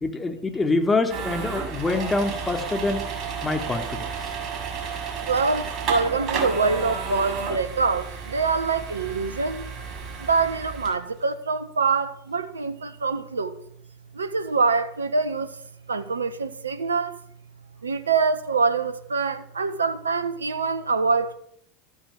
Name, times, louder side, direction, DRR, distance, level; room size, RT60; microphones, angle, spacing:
voice 1, 0.0-3.1 3.4-4.1, left 3 dB, 15° left, 3.2 m, -25 dB
sound 1, 1.1-10.9, right 5 dB, 45° right, 6.1 m, -32 dB
voice 2, 5.3-9.6 10.3-13.6 14.2-15.5 15.9-17.2 17.8-21.3, right 4 dB, 85° right, 1.3 m, -25 dB
14.0 x 12.5 x 7.1 m
figure-of-eight pair, 80°, 0 cm